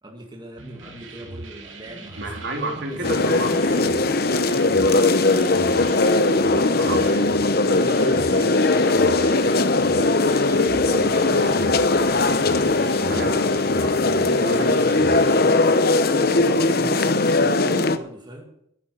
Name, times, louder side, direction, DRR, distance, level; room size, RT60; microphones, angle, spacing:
voice 1, 0.0-2.6 2.9-4.2 6.9-8.7 13.0-13.5 16.2-18.5, right 1 dB, 20° right, 0 dB, 2.0 m, -40 dB
sound 1, 0.6-15.4, right 2 dB, 75° right, 2.5 m, -40 dB
voice 2, 2.2-3.5 6.7-7.4 10.7-12.1 13.1-15.5, right 2 dB, 55° right, 2 dB, 3.0 m, -33 dB
sound 2, 3.0-18.0, left 2 dB, 50° left, 0.9 m, -19 dB
11.0 x 10.5 x 6.8 m, 0.76 s
head